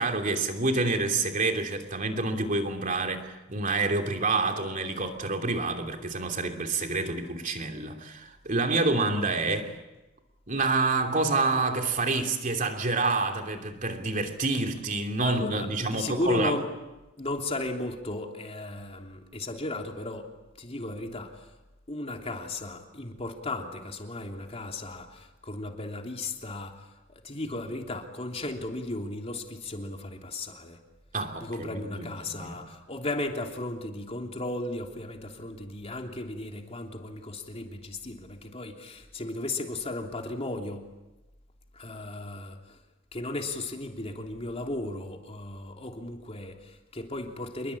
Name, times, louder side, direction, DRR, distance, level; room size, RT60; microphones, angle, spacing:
voice 1, 0.0-9.8 10.5-16.5 31.1-32.5, right 3 dB, 40° right, 2.9 m, -28 dB
voice 2, 15.2-16.6 17.2-20.3 20.6-21.5 21.9-30.8 31.4-40.8 41.7-42.8 43.1-47.8, left 2 dB, 30° left, 3.2 m, -35 dB
27.5 x 22.0 x 8.6 m
head